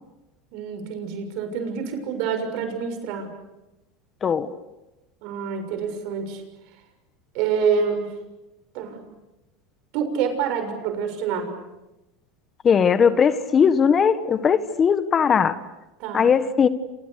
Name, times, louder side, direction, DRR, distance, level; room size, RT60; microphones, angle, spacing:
voice 1, 0.5-3.3 5.2-6.4 7.3-8.1 8.7-9.0 9.9-11.5 16.0-16.3, right 6 dB, 65° right, 7 dB, 6.7 m, -27 dB
voice 2, 12.6-15.6 16.1-16.7, left 7 dB, 30° left, 12 dB, 1.6 m, -19 dB
29.5 x 28.5 x 6.7 m, 1.0 s
supercardioid pair, 110°, 0 cm